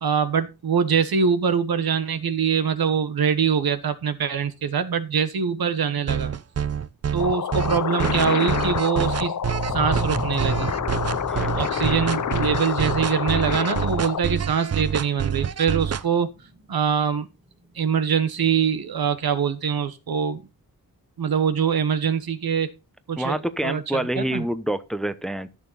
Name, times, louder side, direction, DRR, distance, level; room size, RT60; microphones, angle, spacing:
voice 1, 0.0-6.3 7.1-9.3 9.7-10.7 11.5-16.3 16.7-17.3 17.8-20.4 21.2-22.7 23.1-23.4 23.6-23.8 24.2-24.4, right 6 dB, 75° right, 1.3 m, -23 dB
sound 1, 6.1-16.0, right 8 dB, 45° right, 0.5 m, -27 dB
sound 2, 7.2-14.2, left 8 dB, 55° left, 0.7 m, -28 dB
sound 3, 9.7-18.5 18.8-19.3, equal, 15° right, 2.9 m, -37 dB
voice 2, 11.3-11.9 23.2-25.5, right 1 dB, ahead, 0.8 m, -27 dB
14.0 x 6.7 x 4.0 m
wide cardioid pair, 160°, 37 cm